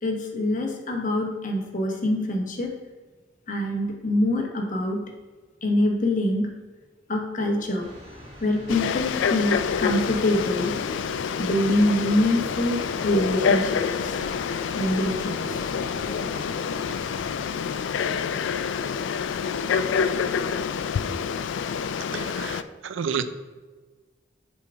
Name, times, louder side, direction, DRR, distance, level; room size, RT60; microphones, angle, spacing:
voice 1, 0.0-2.7 3.5-5.0 5.6-6.5 7.1-7.8 8.4-10.7 11.4-14.2 14.8-15.6, left 1 dB, 45° left, 1 dB, 1.0 m, -25 dB
sound 1, 7.8-17.3, equal, 30° right, 2.0 m, -43 dB
Frog, 8.7-22.6, left 6 dB, 75° left, 0.3 m, -27 dB
voice 2, 22.1-23.3, right 6 dB, 90° right, 12 dB, 0.4 m, -30 dB
6.7 x 3.6 x 4.8 m, 1.3 s
head